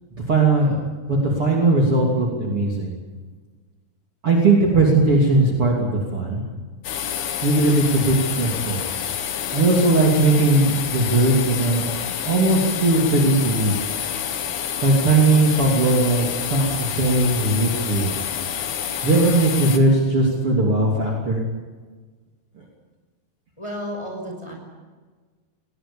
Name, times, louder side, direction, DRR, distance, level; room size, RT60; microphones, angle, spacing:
voice 1, 0.3-2.9 4.2-6.4 7.4-8.8 9.5-13.7 14.8-18.2 19.0-21.4, right 2 dB, 40° right, -1 dB, 3.5 m, -19 dB
sound 1, 6.8-19.8, left 9 dB, 80° left, 3.5 m, -28 dB
voice 2, 23.6-24.5, equal, 5° left, 1 dB, 5.4 m, -32 dB
21.5 x 19.5 x 8.6 m, 1.4 s
omnidirectional pair, 4.3 m